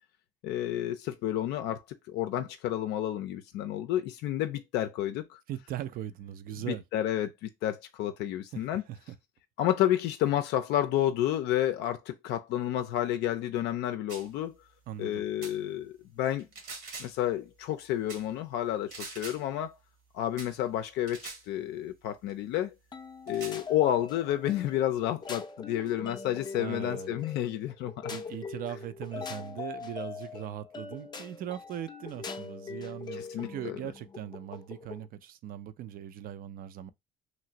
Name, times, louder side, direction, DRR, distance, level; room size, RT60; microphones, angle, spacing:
voice 1, 0.4-5.4 6.7-8.8 9.6-14.6 15.0-16.5 17.0-19.8 20.1-21.2 21.5-22.7 23.3-28.1 33.3-33.8, left 12 dB, 80° left, 0.4 m, -30 dB
voice 2, 5.5-6.8 8.5-9.0 14.9-15.2 26.6-27.2 28.1-36.9, right 11 dB, 60° right, 0.4 m, -40 dB
sound 1, 14.1-14.3 15.4-15.6 16.4-17.2 18.1-18.3 18.9-19.4 20.4-20.5 21.1-21.5 22.3-22.4 23.3-23.6, right 4 dB, 75° right, 1.2 m, -43 dB
sound 2, 22.9-35.1, left 5 dB, 25° left, 0.5 m, -42 dB
3.0 x 2.5 x 2.8 m
cardioid pair, 110°, 17 cm